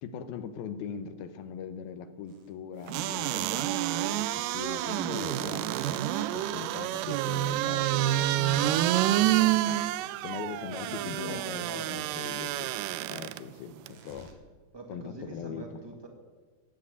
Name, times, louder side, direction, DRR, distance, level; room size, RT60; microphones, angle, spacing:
voice 1, 0.0-12.7 13.1-14.3 14.9-15.8, left 7 dB, 85° left, 10 dB, 2.8 m, -41 dB
sound 1, 2.3-2.5 3.2-3.6 6.5-9.0 11.9-14.3, right 5 dB, 65° right, 2.9 m, -55 dB
sound 2, 2.9-13.4 13.9-14.0, right 14 dB, 80° right, 2.0 m, -28 dB
voice 2, 10.8-12.1 14.7-16.1, right 2 dB, 15° right, 2 dB, 0.9 m, -43 dB
14.0 x 9.8 x 8.2 m, 1.4 s
omnidirectional pair, 4.2 m